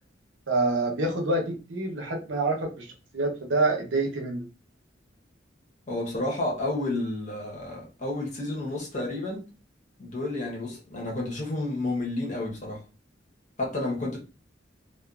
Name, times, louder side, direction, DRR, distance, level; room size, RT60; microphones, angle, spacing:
voice 1, 0.5-2.9 3.1-4.5, right 2 dB, 80° right, 0.8 m, -27 dB
voice 2, 5.9-9.5 10.0-12.8 13.6-14.2, left 2 dB, 40° left, 0.9 m, -31 dB
2.5 x 2.4 x 2.4 m
head